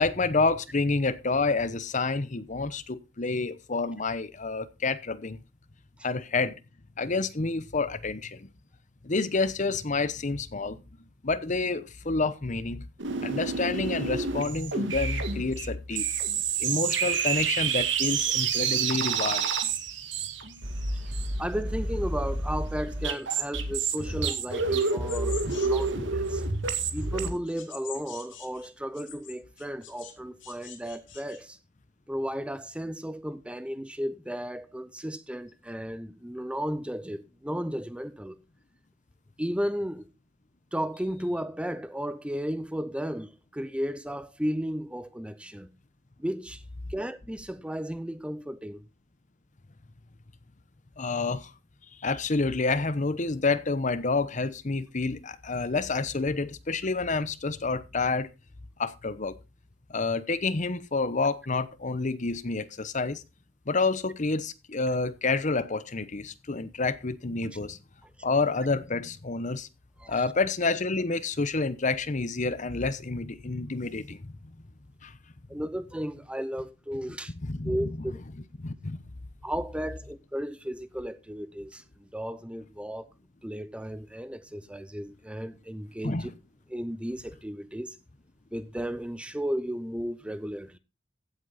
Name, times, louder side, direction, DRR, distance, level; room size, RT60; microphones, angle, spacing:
voice 1, 0.0-5.4 6.0-6.6 7.0-8.5 9.0-10.8 11.2-12.8 13.2-16.1 16.6-19.5 51.0-51.5 52.0-58.3 58.8-59.4 59.9-63.2 63.7-67.8 68.2-69.7 70.1-74.5 75.0-75.1 77.4-78.1 78.6-79.0 86.0-86.3, left 3 dB, 40° left, 0.9 m, -28 dB
sound 1, 13.0-27.3, right 5 dB, 70° right, 2.0 m, -29 dB
voice 2, 21.4-26.4 26.9-31.6 32.1-38.4 39.4-40.1 40.7-45.7 46.2-46.6 46.9-48.8 70.0-70.2 75.5-77.3 77.6-78.1 79.4-83.1 83.4-86.3 86.7-88.0 88.5-90.8, equal, 5° right, 0.6 m, -34 dB
sound 2, 23.8-25.9 26.3-30.1 30.4-31.4, left 9 dB, 75° left, 3.7 m, -46 dB
15.5 x 8.2 x 4.1 m
head